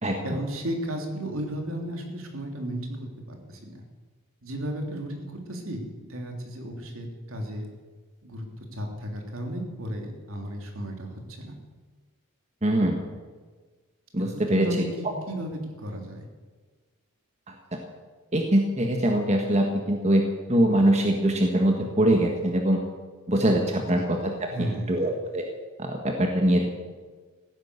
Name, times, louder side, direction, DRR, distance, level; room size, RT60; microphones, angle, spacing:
voice 1, 0.2-3.0 3.3-3.8 4.4-7.7 8.2-11.5 14.2-16.2 23.7-24.1 24.5-25.1, equal, 65° right, 2 dB, 3.2 m, -34 dB
voice 2, 12.6-13.0 14.1-14.7 18.3-20.2 20.5-22.8 23.3-24.3 24.6-25.4 25.8-26.7, right 1 dB, 30° right, 2 dB, 1.6 m, -23 dB
15.5 x 11.0 x 8.2 m, 1.4 s
head